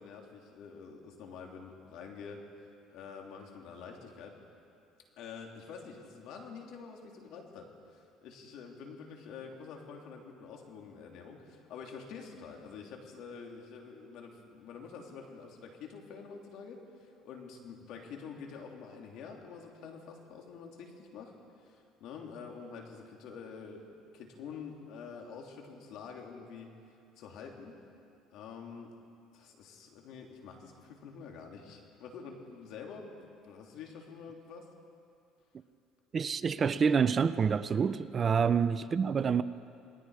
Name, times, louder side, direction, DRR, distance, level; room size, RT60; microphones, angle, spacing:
voice 1, 0.0-2.4 2.9-4.4 5.2-21.3 21.6-26.7 27.2-27.8 28.3-28.9 29.3-34.7 38.4-38.5, left 5 dB, 70° left, 3.3 m, -47 dB
voice 2, 36.1-39.4, right 6 dB, 35° right, 0.6 m, -27 dB
28.0 x 20.0 x 5.0 m
cardioid pair, 105°, 0 cm